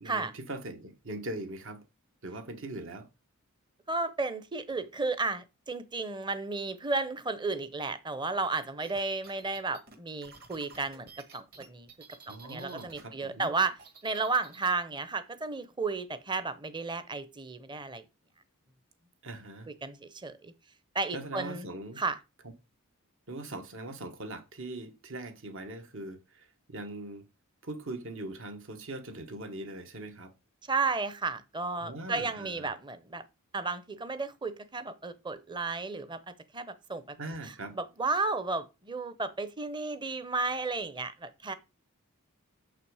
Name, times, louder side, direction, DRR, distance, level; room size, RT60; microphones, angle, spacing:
voice 1, 0.0-1.8 2.2-3.1 12.3-13.5 19.2-19.7 21.1-22.0 23.3-27.2 27.6-30.3 31.8-32.7 37.2-37.8, right 2 dB, 60° right, 1.3 m, -41 dB
voice 2, 3.9-11.9 12.3-13.8 14.0-18.0 19.7-20.5 20.9-21.7 22.0-22.2 30.7-33.2 33.5-37.2 37.4-41.5, right 3 dB, 20° right, 0.8 m, -33 dB
sound 1, 8.8-13.0 13.3-14.7, right 4 dB, 45° right, 1.8 m, -52 dB
7.2 x 5.8 x 4.9 m
head